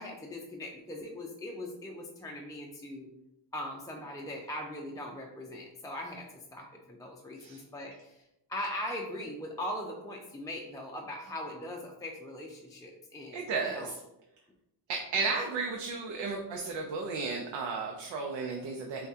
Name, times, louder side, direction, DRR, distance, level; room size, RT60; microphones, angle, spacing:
voice 1, 0.0-3.1 3.5-8.2 8.5-13.9, left 1 dB, 10° left, -1 dB, 0.4 m, -40 dB
voice 2, 13.3-14.0 14.9-19.1, right 4 dB, 85° right, 1 dB, 0.7 m, -34 dB
5.6 x 2.3 x 2.7 m, 0.87 s
cardioid pair, 90°, 44 cm